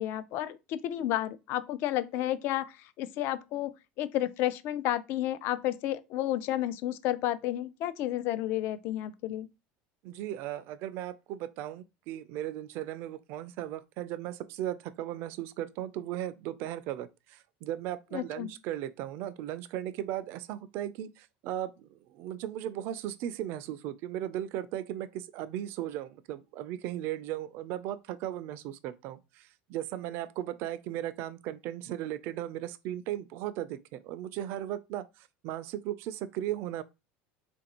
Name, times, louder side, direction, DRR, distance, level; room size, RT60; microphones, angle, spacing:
voice 1, 0.0-9.5 18.1-18.5, left 13 dB, 55° left, 0.3 m, -31 dB
voice 2, 10.0-36.8, right 12 dB, 55° right, 0.4 m, -37 dB
3.9 x 2.6 x 2.9 m
supercardioid pair, 145°, 5 cm